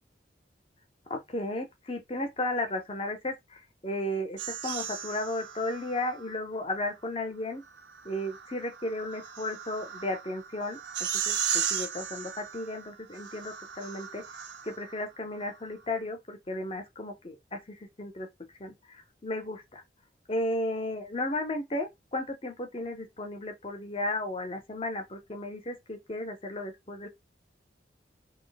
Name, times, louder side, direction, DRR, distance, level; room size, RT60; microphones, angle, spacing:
voice 1, 1.1-7.6 8.0-10.8 11.1-14.2 14.6-18.3 18.6-19.8 20.3-27.1, left 1 dB, 30° left, 0.7 m, -34 dB
sound 1, 4.4-6.3 7.8-15.0, right 8 dB, 85° right, 0.5 m, -36 dB
2.9 x 2.1 x 3.9 m
head